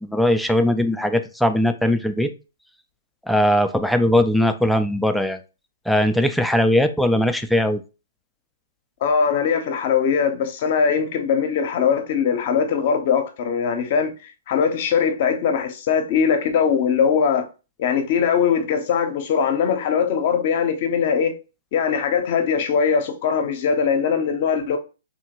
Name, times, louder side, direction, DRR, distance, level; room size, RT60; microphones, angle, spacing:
voice 1, 0.0-2.3 3.3-5.4 5.9-7.8, left 1 dB, ahead, 0.3 m, -19 dB
voice 2, 9.0-17.5 17.8-21.4 21.7-24.8, left 6 dB, 45° left, 0.6 m, -21 dB
2.8 x 2.6 x 2.9 m
hypercardioid pair, 125°, 0 cm